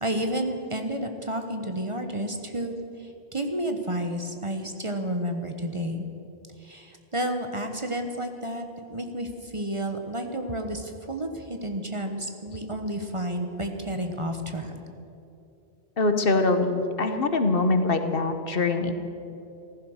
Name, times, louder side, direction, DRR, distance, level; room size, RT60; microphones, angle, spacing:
voice 1, 0.0-6.0 6.6-14.7, right 1 dB, 30° right, 5 dB, 1.1 m, -31 dB
voice 2, 16.0-18.9, left 3 dB, 60° left, 7 dB, 1.2 m, -23 dB
15.0 x 14.5 x 6.5 m, 2.8 s
omnidirectional pair, 1.1 m